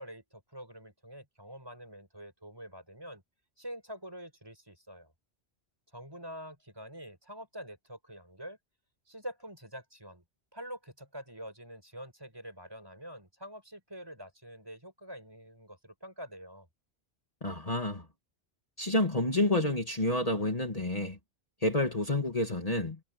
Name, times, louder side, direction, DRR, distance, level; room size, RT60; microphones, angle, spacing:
voice 1, 0.0-3.2 3.6-5.1 5.9-8.6 9.1-10.2 10.5-16.7, equal, 20° right, 5.8 m, -46 dB
voice 2, 17.4-18.1 18.8-21.2 21.6-23.0, left 1 dB, 35° left, 2.2 m, -29 dB
omnidirectional pair, 1.1 m